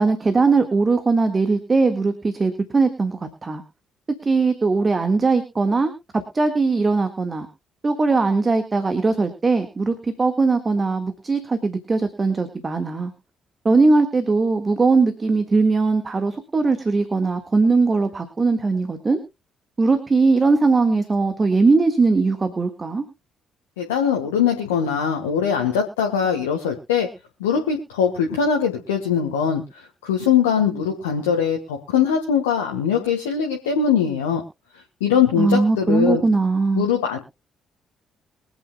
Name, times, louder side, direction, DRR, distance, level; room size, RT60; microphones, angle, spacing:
voice 1, 0.0-3.6 4.2-5.9 6.3-7.5 7.8-13.1 13.6-19.2 19.8-23.0 35.4-36.9, right 3 dB, 30° right, 7 dB, 1.6 m, -20 dB
voice 2, 23.8-27.1 27.4-34.4 35.0-36.2 36.7-37.2, left 7 dB, 80° left, 2 dB, 1.3 m, -21 dB
23.5 x 8.6 x 2.2 m, 0.27 s
figure-of-eight pair, 45°, 0 cm